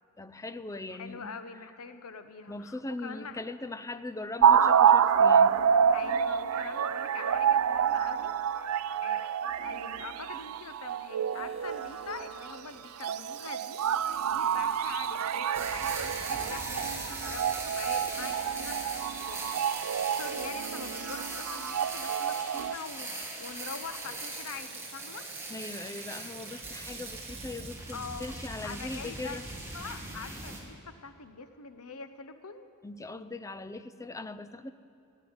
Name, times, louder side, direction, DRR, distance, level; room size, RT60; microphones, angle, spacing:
voice 1, 0.2-1.3 2.5-5.6 25.5-29.4 32.8-34.7, left 2 dB, 15° left, 12 dB, 0.5 m, -40 dB
voice 2, 0.9-3.4 5.9-8.7 9.0-9.3 9.6-25.3 27.9-28.3 28.6-29.5 29.7-32.7, left 5 dB, 75° left, 10 dB, 0.9 m, -44 dB
sound 1, 4.4-12.6 13.0-22.7, right 7 dB, 75° right, 0.4 m, -27 dB
Water tap faucet / Sink (filling or washing), 11.3-19.7 20.2-20.3 21.1-21.3 22.9-27.8, right 6 dB, 30° right, 1.2 m, -51 dB
sound 2, 15.5-30.6, right 2 dB, 10° right, 2.2 m, -40 dB
16.0 x 9.1 x 9.5 m, 2.6 s
head